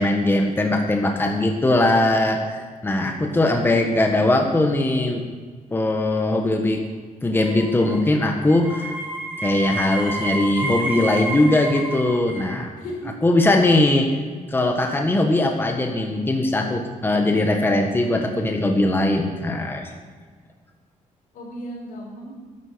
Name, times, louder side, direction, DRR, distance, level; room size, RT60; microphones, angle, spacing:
voice 1, 0.0-5.2 5.7-6.8 7.2-9.0 9.4-12.7 13.2-14.1 14.5-19.9, left 2 dB, 15° left, 3 dB, 1.4 m, -20 dB
voice 2, 3.0-3.7 12.8-13.1 21.3-22.3, equal, 85° left, -2 dB, 5.1 m, -36 dB
sound 1, 7.3-12.5, right 2 dB, 10° right, 3.4 m, -30 dB
12.5 x 11.0 x 6.9 m, 1.5 s
cardioid pair, 130°, 14 cm